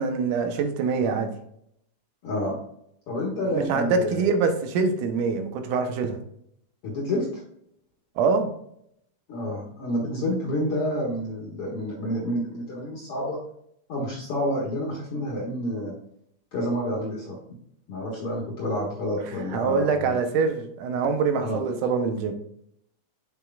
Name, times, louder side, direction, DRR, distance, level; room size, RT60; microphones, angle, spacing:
voice 1, 0.0-1.3 3.5-6.2 8.2-8.5 19.5-22.3, right 5 dB, 85° right, 6 dB, 2.5 m, -24 dB
voice 2, 2.2-2.6 3.1-4.2 6.8-7.2 9.3-13.4 13.9-15.9 16.5-17.4 17.9-20.2 21.4-21.6, equal, 55° left, -4 dB, 2.2 m, -29 dB
6.7 x 6.6 x 2.4 m, 0.71 s
omnidirectional pair, 3.6 m